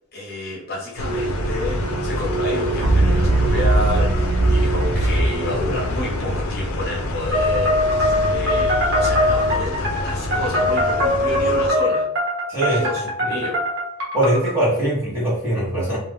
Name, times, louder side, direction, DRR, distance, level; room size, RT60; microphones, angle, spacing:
voice 1, 0.1-12.1 12.7-13.6, left 1 dB, 45° left, -3 dB, 0.9 m, -29 dB
sound 1, 1.0-11.7, left 1 dB, 80° left, 0.4 m, -27 dB
sound 2, 1.0-6.4, right 2 dB, 90° right, 0.5 m, -21 dB
sound 3, 7.3-14.5, left 1 dB, 60° right, 1.1 m, -22 dB
voice 2, 12.5-12.8 13.2-13.3 14.1-16.0, right 1 dB, 10° right, -7 dB, 1.0 m, -21 dB
2.3 x 2.3 x 3.2 m, 0.81 s
head